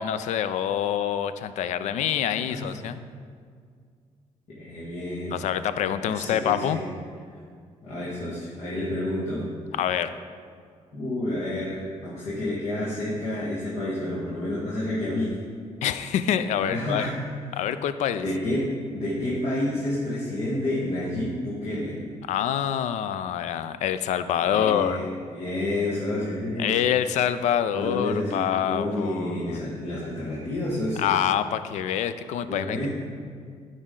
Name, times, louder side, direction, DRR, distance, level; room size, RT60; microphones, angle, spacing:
voice 1, 0.0-3.0 5.3-6.8 9.7-10.1 15.8-17.1 17.5-18.2 22.3-25.0 26.6-29.4 31.0-32.9, left 9 dB, 80° left, 12 dB, 0.4 m, -26 dB
voice 2, 4.5-5.4 6.0-6.8 7.8-9.4 10.9-15.3 16.7-17.1 17.5-17.6 18.2-22.0 24.4-26.8 27.7-31.1 32.5-32.9, left 1 dB, 65° left, -7 dB, 1.6 m, -29 dB
9.4 x 5.0 x 3.7 m, 2.1 s
cardioid pair, 105°, 12 cm